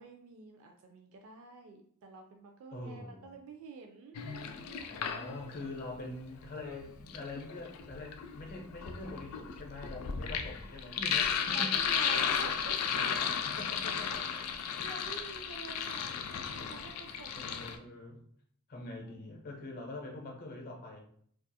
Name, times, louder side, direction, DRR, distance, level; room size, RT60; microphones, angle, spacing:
voice 1, 0.0-5.0 11.3-13.2 14.8-18.0 18.8-19.3, right 4 dB, 70° right, 3 dB, 0.3 m, -49 dB
voice 2, 2.7-3.3 4.9-11.7 13.2-14.4 16.6-16.9 17.3-18.2 18.7-21.0, left 2 dB, 45° left, 0 dB, 0.6 m, -44 dB
Sink (filling or washing), 4.1-5.7 6.8-17.8, left 7 dB, 85° left, 0.3 m, -34 dB
2.7 x 2.3 x 2.2 m, 0.63 s
head